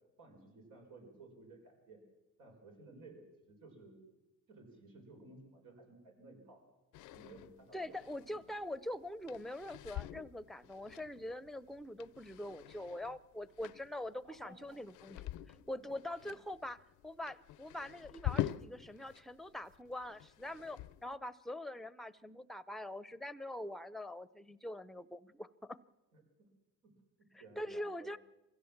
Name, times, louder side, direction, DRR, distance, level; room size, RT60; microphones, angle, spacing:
voice 1, 0.2-2.0 2.4-4.0 4.5-6.6 7.1-8.3 14.2-14.6 15.5-15.8 26.1-26.5 26.8-26.9 27.2-28.2, right 2 dB, 85° right, 2 dB, 5.4 m, -57 dB
sound 1, 6.9-19.2 19.5-21.1, left 14 dB, 90° left, 0.6 m, -45 dB
voice 2, 7.7-15.3 15.7-25.8 27.6-28.2, left 1 dB, ahead, 17 dB, 0.7 m, -44 dB
24.0 x 16.0 x 7.3 m, 1.0 s
cardioid pair, 90°, 30 cm